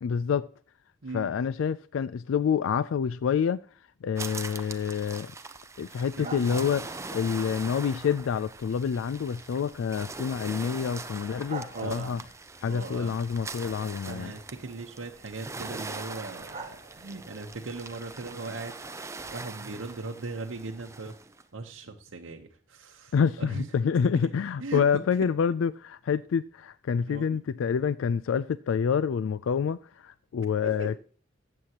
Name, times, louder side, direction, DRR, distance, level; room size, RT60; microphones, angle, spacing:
voice 1, 0.0-0.5 1.1-3.6 4.0-5.3 5.8-12.2 12.6-14.3 23.1-31.0, left 7 dB, 85° left, 0.3 m, -27 dB
voice 2, 1.0-1.3 6.2-6.6 11.7-12.3 12.6-13.2 14.1-18.8 19.3-21.2 21.5-23.7 24.6-25.0 27.1-27.4 30.6-30.9, right 3 dB, 85° right, 0.9 m, -38 dB
sound 1, 4.2-21.4, right 3 dB, 15° right, 0.6 m, -42 dB
sound 2, 6.2-18.4, right 3 dB, 35° right, 1.8 m, -49 dB
14.0 x 8.6 x 2.9 m
head